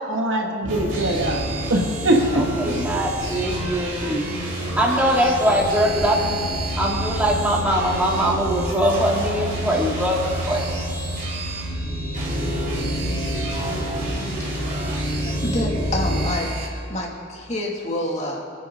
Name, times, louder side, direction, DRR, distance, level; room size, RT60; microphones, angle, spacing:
voice 1, 0.1-1.4 1.7-2.7, right 1 dB, 90° right, 1 dB, 2.1 m, -22 dB
sound 1, 0.6-16.3, equal, 15° left, 2.7 m, -28 dB
sound 2, 0.7-16.7, right 2 dB, 45° right, 3.8 m, -33 dB
voice 2, 2.3-4.2 4.8-6.4 6.8-10.7, equal, 10° right, -4 dB, 2.6 m, -22 dB
voice 3, 15.2-18.4, left 1 dB, 35° left, -2 dB, 2.5 m, -28 dB
28.0 x 11.0 x 3.9 m, 2.5 s
head